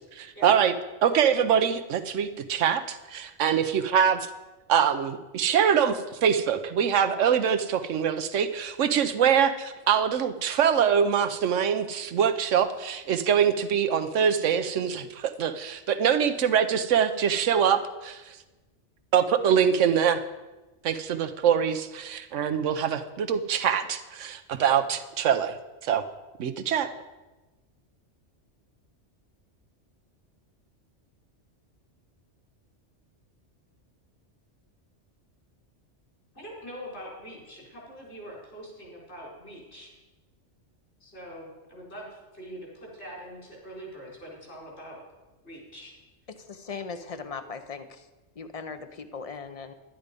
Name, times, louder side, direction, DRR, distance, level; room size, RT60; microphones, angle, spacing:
voice 1, 0.1-0.7 1.0-4.3 4.7-18.4 19.1-20.2 20.8-25.6 25.8-26.0 26.4-26.9, right 8 dB, 90° right, 9 dB, 1.1 m, -24 dB
voice 2, 36.3-39.9 41.0-45.0 45.4-45.9, equal, 65° left, -4 dB, 4.6 m, -43 dB
voice 3, 46.3-48.1 48.4-49.7, left 5 dB, 35° left, 10 dB, 0.7 m, -38 dB
11.0 x 10.5 x 5.1 m, 1.1 s
omnidirectional pair, 1.2 m